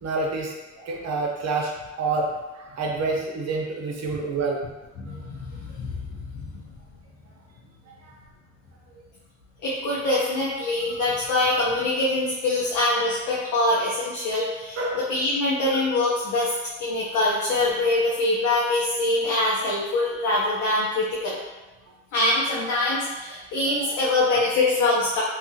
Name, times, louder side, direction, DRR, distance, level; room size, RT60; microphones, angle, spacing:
voice 1, 0.0-1.7 2.0-2.3 2.5-4.6 14.8-15.0 15.7-15.8, right 3 dB, 60° right, -1 dB, 0.8 m, -27 dB
voice 2, 5.0-5.3 5.6-6.5 9.6-16.5 16.8-21.3 22.1-25.2, left 2 dB, 85° left, -7 dB, 0.7 m, -24 dB
2.8 x 2.4 x 2.8 m, 1.1 s
cardioid pair, 90°, 30 cm